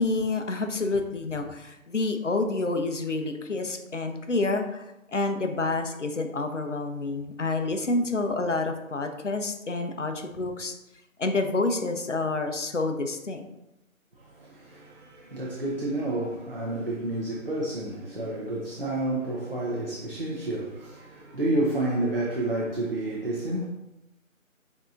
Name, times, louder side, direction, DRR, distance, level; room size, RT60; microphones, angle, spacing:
voice 1, 0.0-4.8 5.1-10.7 11.2-13.4, left 3 dB, 60° left, 0.6 m, -28 dB
voice 2, 14.2-23.7, right 1 dB, 45° right, 0.6 m, -30 dB
6.7 x 2.8 x 2.4 m
figure-of-eight pair, 175°, 42 cm